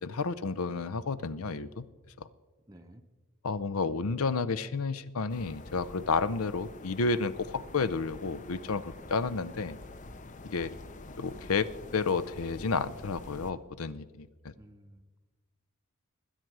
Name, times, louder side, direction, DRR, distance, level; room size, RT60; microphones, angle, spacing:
voice 1, 0.0-1.9 2.2-2.3 3.4-9.8 10.4-10.7 11.2-14.5, left 4 dB, 90° left, 16 dB, 0.6 m, -31 dB
voice 2, 2.7-3.0 14.6-15.2, right 1 dB, 15° right, 3 dB, 0.6 m, -54 dB
sound 1, 5.3-13.5, left 2 dB, 35° left, 0.6 m, -47 dB
20.5 x 9.0 x 4.7 m, 1.3 s
head